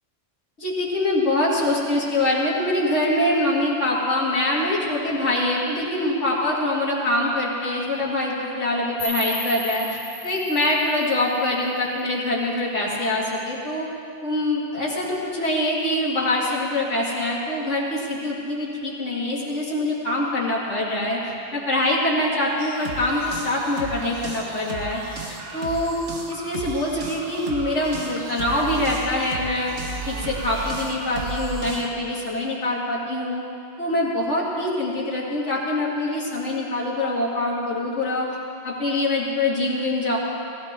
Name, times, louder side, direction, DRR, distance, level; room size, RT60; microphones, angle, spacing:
voice 1, 0.6-13.9 14.2-25.0 25.5-26.0 26.3-29.7 30.1-33.4 33.8-38.3 38.6-40.2, left 1 dB, 90° left, -6 dB, 2.5 m, -24 dB
sound 1, 9.0-12.0, right 1 dB, 35° right, 3.9 m, -35 dB
sound 2, 22.6-31.9, right 3 dB, 85° right, 1.6 m, -34 dB
17.5 x 16.0 x 3.7 m, 2.5 s
omnidirectional pair, 1.2 m